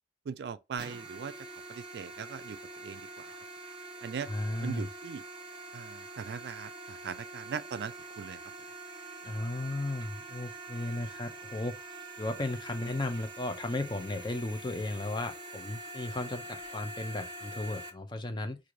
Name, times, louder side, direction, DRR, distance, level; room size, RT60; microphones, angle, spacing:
voice 1, 0.3-1.3 1.7-3.3 4.0-4.3 4.6-5.2 5.7-8.4, right 6 dB, 65° right, 0.3 m, -40 dB
sound 1, 0.8-17.9, right 2 dB, 25° right, 0.7 m, -45 dB
voice 2, 4.3-4.9 9.2-18.6, left 2 dB, 25° left, 0.5 m, -35 dB
3.1 x 2.5 x 3.7 m
head